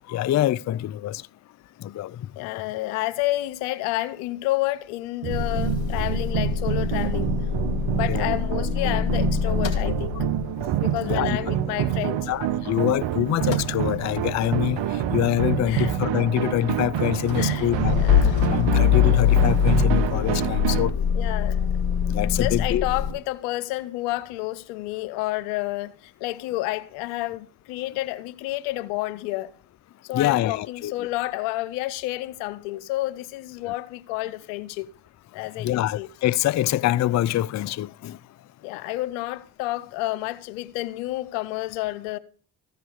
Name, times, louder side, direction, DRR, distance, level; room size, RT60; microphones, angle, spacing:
voice 1, 0.1-1.2 1.8-2.2 8.1-8.3 9.8-9.9 11.0-11.3 12.3-18.0 18.5-20.9 22.1-22.8 30.1-31.1 33.6-33.7 35.6-38.2, left 13 dB, 40° left, 0.4 m, -25 dB
voice 2, 2.4-7.3 7.9-10.1 10.8-12.3 15.7-15.9 17.4-18.5 19.0-19.3 21.1-21.7 22.0-29.5 30.0-34.9 35.3-36.1 38.6-42.2, left 17 dB, 90° left, 0.6 m, -30 dB
sound 1, 5.2-20.9, right 11 dB, 60° right, 0.8 m, -27 dB
Motor vehicle (road) / Engine starting / Idling, 5.3-13.0 13.3-23.1, left 8 dB, 65° left, 2.6 m, -25 dB
14.5 x 4.8 x 6.3 m
hypercardioid pair, 40°, 49 cm